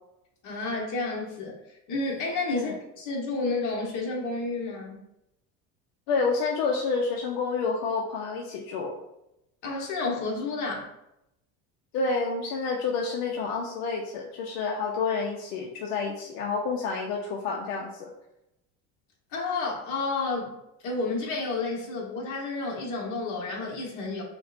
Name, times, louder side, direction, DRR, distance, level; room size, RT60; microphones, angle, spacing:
voice 1, 0.4-1.6 1.9-5.0 9.6-10.9 19.3-20.5 20.8-24.2, left 3 dB, 60° left, -1 dB, 1.2 m, -30 dB
voice 2, 6.1-8.9 11.9-18.1, left 4 dB, 75° left, 0 dB, 0.7 m, -29 dB
5.7 x 2.2 x 2.5 m, 0.84 s
supercardioid pair, 125°, 34 cm